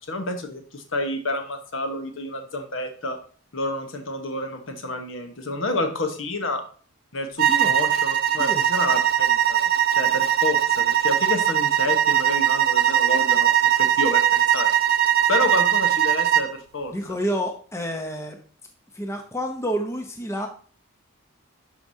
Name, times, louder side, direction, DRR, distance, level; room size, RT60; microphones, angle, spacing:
voice 1, 0.1-3.2 3.5-6.6 7.1-13.5 13.8-14.7 15.3-16.9, left 2 dB, 60° left, 6 dB, 1.1 m, -29 dB
sound 1, 7.4-16.5, right 11 dB, 45° right, 0.4 m, -20 dB
voice 2, 16.9-18.4 18.9-20.5, equal, 15° left, 4 dB, 0.6 m, -29 dB
11.5 x 4.8 x 2.7 m, 0.43 s
head